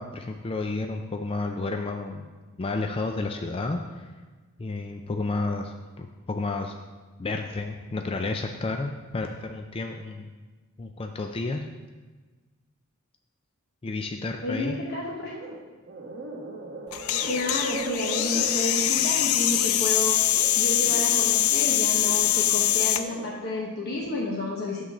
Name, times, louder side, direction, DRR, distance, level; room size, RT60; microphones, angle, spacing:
voice 1, 0.0-2.3 2.6-4.1 4.6-6.7 7.2-10.3 10.8-11.7 13.8-14.8, left 3 dB, 25° left, 4 dB, 0.4 m, -31 dB
voice 2, 14.4-15.3 17.2-24.8, left 2 dB, 50° left, -3 dB, 1.0 m, -31 dB
sound 1, 15.3-15.6 15.8-21.2 21.6-23.3 23.8-24.1, right 3 dB, 50° right, 1.0 m, -39 dB
sound 2, 16.9-23.0, left 12 dB, 90° left, 0.4 m, -23 dB
8.8 x 3.8 x 6.5 m, 1.3 s
head